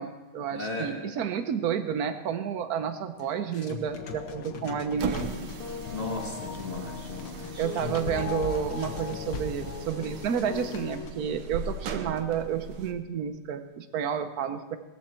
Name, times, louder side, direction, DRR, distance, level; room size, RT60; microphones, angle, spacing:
voice 1, 0.0-5.3 7.6-14.8, right 8 dB, 55° right, 10 dB, 1.1 m, -30 dB
voice 2, 0.5-0.9 5.9-7.7, left 2 dB, 25° left, -1 dB, 1.9 m, -36 dB
sound 1, 3.2-5.6 7.3-9.7, left 5 dB, 50° left, 1.7 m, -39 dB
sound 2, 4.0-11.1, left 8 dB, 90° left, 1.8 m, -39 dB
sound 3, 4.9-13.0, right 5 dB, 80° right, 1.9 m, -39 dB
18.5 x 14.5 x 4.4 m, 1.1 s
omnidirectional pair, 2.3 m